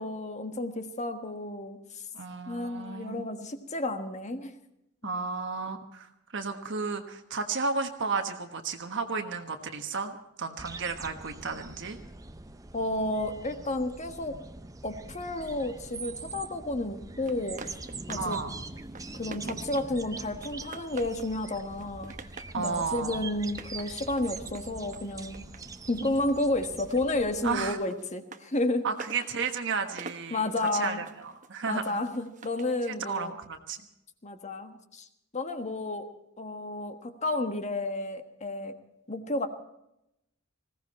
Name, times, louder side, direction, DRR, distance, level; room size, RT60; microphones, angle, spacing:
voice 1, 0.0-2.0 2.5-4.5 12.7-14.4 14.8-17.7 18.1-18.4 19.1-22.1 22.5-25.4 25.9-28.9 30.3-31.1 31.7-33.3 34.2-35.1 35.3-36.1 36.4-38.7 39.1-39.5, left 2 dB, 30° left, 7 dB, 1.4 m, -31 dB
voice 2, 2.1-3.2 5.0-6.1 6.3-12.0 18.1-18.6 22.5-23.3 26.0-26.1 27.4-27.8 28.8-32.0 32.9-33.8, right 4 dB, 55° right, 5 dB, 1.4 m, -33 dB
sound 1, 10.6-27.7, right 3 dB, 15° right, 0.7 m, -43 dB
sound 2, 17.3-18.4 18.7-20.0 20.4-21.4 21.7-22.6 23.4-26.4 26.7-32.8, right 4 dB, 35° right, 1.0 m, -47 dB
20.5 x 16.5 x 4.3 m, 0.84 s
head